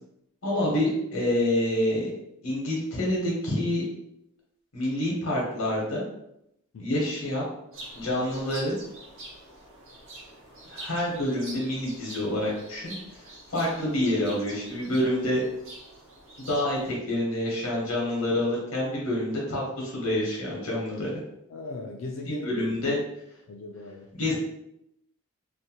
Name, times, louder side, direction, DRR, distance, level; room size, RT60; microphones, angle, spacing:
voice 1, 0.4-2.1 2.4-3.8 4.7-6.0 6.8-7.4 7.9-8.8 10.7-13.2 13.5-15.4 16.4-21.1 22.3-23.0 24.2-24.3, left 1 dB, 85° left, -4 dB, 0.8 m, -27 dB
sound 1, 7.7-16.9, right 1 dB, 70° right, 0.7 m, -45 dB
voice 2, 21.5-22.6 23.5-24.1, left 2 dB, 65° left, 0 dB, 0.3 m, -38 dB
2.6 x 2.1 x 2.7 m, 0.79 s
head